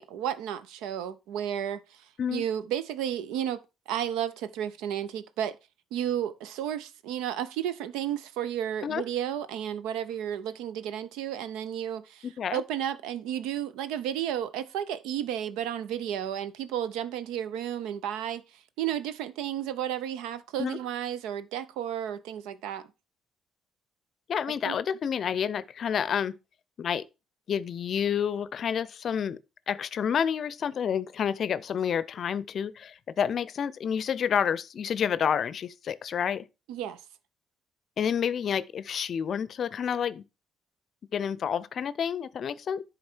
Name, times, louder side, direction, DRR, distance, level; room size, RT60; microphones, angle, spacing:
voice 1, 0.0-2.0 2.3-5.6 5.9-18.4 18.8-22.9 24.7-24.8 36.7-37.0, right 10 dB, 80° right, 0.5 m, -32 dB
voice 2, 12.2-12.6 20.6-20.8 24.3-26.4 26.8-27.0 27.5-29.4 29.7-36.5 38.0-40.2 41.1-42.8, left 8 dB, 55° left, 0.5 m, -29 dB
10.5 x 3.9 x 4.4 m
hypercardioid pair, 55°, 0 cm